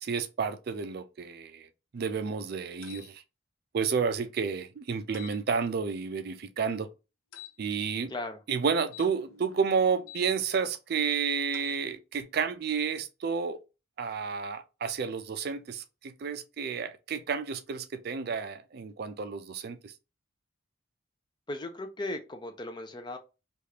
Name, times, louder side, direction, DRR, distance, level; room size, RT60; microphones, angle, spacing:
voice 1, 0.0-1.7 1.9-3.2 3.7-6.9 7.6-8.1 8.5-13.6 14.0-19.9, right 6 dB, 50° right, 0.4 m, -31 dB
sound 1, 2.8-3.1 5.1-5.4 7.3-7.5 8.9-10.2 11.5-11.8, left 8 dB, 85° left, 0.4 m, -48 dB
voice 2, 8.1-8.4 21.5-23.2, left 2 dB, 20° left, 0.5 m, -37 dB
3.3 x 2.4 x 2.8 m
head